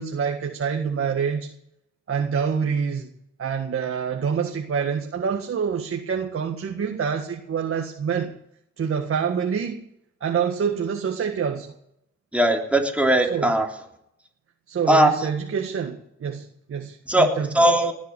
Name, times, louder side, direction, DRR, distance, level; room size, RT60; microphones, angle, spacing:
voice 1, 0.0-1.5 2.1-3.1 3.4-8.3 8.8-9.9 10.2-11.7 13.3-13.5 14.7-17.5, right 6 dB, 45° right, 3 dB, 1.8 m, -26 dB
voice 2, 12.3-13.7 14.9-15.1 17.1-17.9, right 1 dB, 5° right, 2 dB, 3.4 m, -19 dB
19.0 x 8.4 x 8.2 m, 0.76 s
cardioid pair, 90°, 30 cm